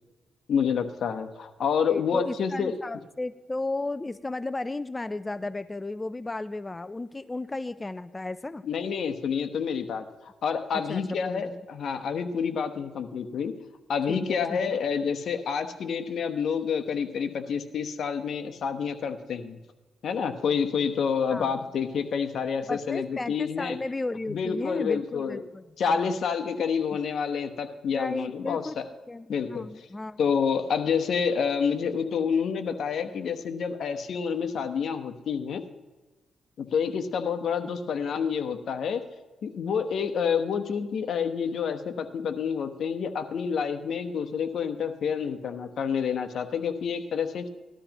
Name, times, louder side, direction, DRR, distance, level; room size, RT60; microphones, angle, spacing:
voice 1, 0.5-2.7 8.6-13.5 13.9-19.6 20.0-23.8 24.3-25.4 25.8-28.9 29.3-29.9 30.2-35.7 36.6-39.0 39.4-47.5, left 6 dB, 70° left, 7 dB, 1.0 m, -28 dB
voice 2, 1.8-8.6 10.9-11.6 14.1-14.8 21.3-21.5 22.7-25.6 25.9-26.1 26.9-27.0 27.9-28.8 29.1-30.2, left 2 dB, 20° left, 13 dB, 0.4 m, -34 dB
19.0 x 12.5 x 3.0 m, 1.2 s
cardioid pair, 80°, 0 cm